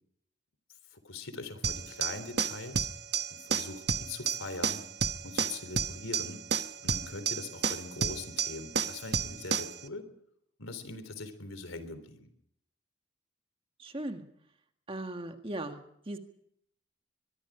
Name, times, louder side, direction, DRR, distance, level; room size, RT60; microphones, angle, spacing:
voice 1, 0.9-2.9 3.3-4.8 5.2-6.4 6.8-10.1 10.6-12.3, left 3 dB, 90° left, 11 dB, 3.6 m, -42 dB
sound 1, 1.6-9.8, right 6 dB, 55° right, 1.0 m, -32 dB
voice 2, 13.8-14.2 14.9-15.8 16.0-16.2, right 1 dB, 25° right, 5 dB, 1.7 m, -37 dB
23.0 x 22.5 x 5.0 m, 0.71 s
head